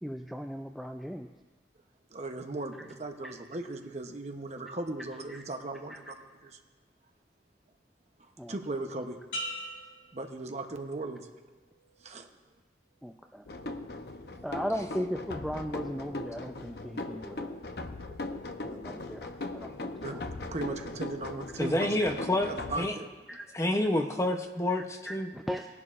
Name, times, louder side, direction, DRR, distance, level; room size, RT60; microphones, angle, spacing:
voice 1, 0.0-1.3 5.3-5.4 5.9-6.0 8.4-8.6 13.0-13.4 14.4-17.5 18.6-20.2 23.3-23.4 24.8-25.7, equal, ahead, 3 dB, 0.3 m, -37 dB
voice 2, 2.1-6.6 8.2-9.2 10.1-11.5 12.0-12.3 18.1-18.2 20.0-20.2 20.5-22.0 22.4-23.1, right 2 dB, 40° right, 5 dB, 0.8 m, -38 dB
sound 1, 9.3-11.1 11.6-12.1, equal, 80° left, 3.1 m, -41 dB
sound 2, 13.4-22.8, left 2 dB, 65° left, 0.7 m, -39 dB
voice 3, 21.6-22.5 22.8-22.9 23.5-25.3, left 1 dB, 15° left, 4 dB, 0.7 m, -28 dB
20.0 x 11.0 x 2.5 m, 1.3 s
head